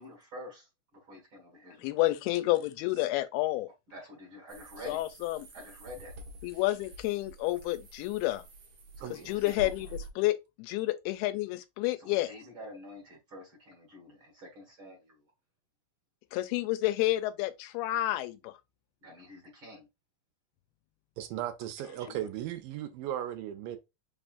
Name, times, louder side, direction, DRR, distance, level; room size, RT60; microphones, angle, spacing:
voice 1, 0.0-2.0 3.9-5.0 5.5-6.1 9.0-9.9 12.0-15.2 19.0-19.9 21.8-22.3, left 1 dB, 45° right, 1.8 m, -48 dB
voice 2, 1.8-3.7 4.9-5.5 6.4-8.4 9.1-9.9 10.2-12.3 16.3-18.6, left 17 dB, 90° left, 2.6 m, -30 dB
sound 1, 4.5-10.1, right 1 dB, 60° right, 1.6 m, -48 dB
voice 3, 9.0-9.3 21.2-23.8, right 11 dB, 80° right, 2.1 m, -37 dB
5.6 x 3.5 x 2.5 m
omnidirectional pair, 4.4 m